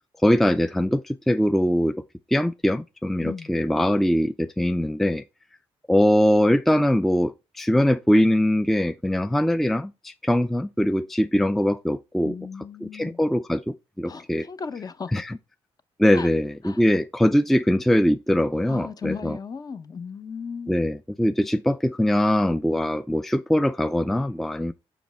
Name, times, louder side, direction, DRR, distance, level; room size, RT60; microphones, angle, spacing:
voice 1, 0.2-2.0 2.3-5.2 5.9-12.4 12.8-14.5 15.1-15.3 16.0-19.4 20.7-24.7, equal, ahead, 0.3 m, -22 dB
voice 2, 3.2-3.5 12.2-13.2 14.1-15.2 16.1-16.3 16.6-16.8 18.7-20.8, left 5 dB, 35° left, 0.7 m, -36 dB
5.9 x 5.1 x 3.3 m
cardioid pair, 80°, 11 cm